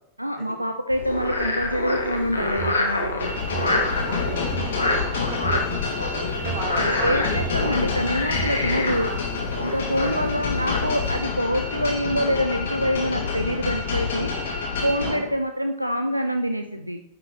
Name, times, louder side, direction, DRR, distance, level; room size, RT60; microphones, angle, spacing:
voice 1, 0.2-3.3 6.7-9.1 9.6-14.3 14.8-17.0, equal, 90° right, 7 dB, 0.3 m, -26 dB
Frog, 0.9-11.2, left 2 dB, 80° left, 1.1 m, -27 dB
sound 1, 2.1-2.8 3.3-4.7 5.3-6.6 7.2-8.5, right 6 dB, 15° left, 1.3 m, -36 dB
sound 2, 3.2-15.2, left 5 dB, 60° left, 1.9 m, -28 dB
voice 2, 3.6-6.0 6.4-7.7 8.9-9.4 10.0-10.2 15.0-15.3, right 5 dB, 45° right, 3 dB, 1.5 m, -37 dB
9.4 x 5.0 x 3.2 m, 0.83 s
figure-of-eight pair, 90°, 0 cm